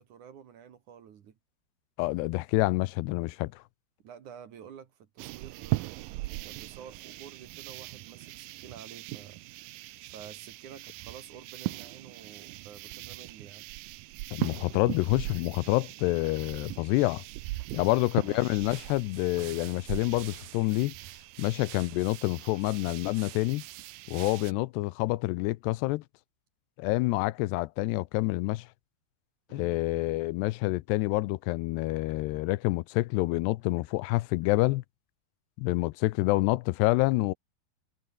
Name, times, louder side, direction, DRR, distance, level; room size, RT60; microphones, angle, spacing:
voice 1, 0.0-1.4 4.0-6.0 6.4-9.4 10.1-13.7 16.3-16.6 17.7-18.0 29.5-29.8, right 8 dB, 55° right, 2.9 m, -50 dB
voice 2, 2.0-3.6 14.3-17.2 17.7-20.9 21.4-23.6 24.1-26.0 26.8-28.7 29.5-34.8 35.6-37.3, left 20 dB, 85° left, 2.8 m, -27 dB
sound 1, 5.2-24.5, right 19 dB, 85° right, 2.0 m, -40 dB
omnidirectional pair, 4.8 m